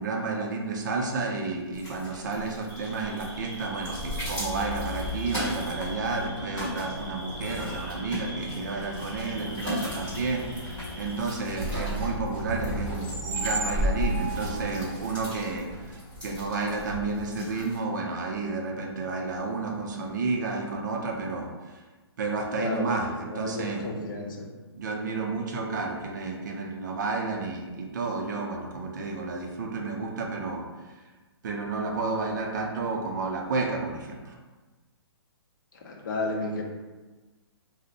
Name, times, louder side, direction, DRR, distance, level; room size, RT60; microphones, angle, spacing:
voice 1, 0.0-21.8 22.2-24.1 24.7-30.6 31.4-34.4, right 3 dB, 45° right, 1 dB, 0.4 m, -31 dB
sound 1, 1.7-17.8, left 1 dB, 5° left, 1.3 m, -40 dB
sound 2, 2.7-11.2, right 1 dB, 25° left, 1.1 m, -44 dB
sound 3, 3.8-17.5, equal, 10° right, 0.9 m, -35 dB
voice 2, 23.3-24.5 35.8-36.6, left 2 dB, 50° left, 0 dB, 0.5 m, -32 dB
2.5 x 2.0 x 3.9 m, 1.3 s
hypercardioid pair, 165°, 14 cm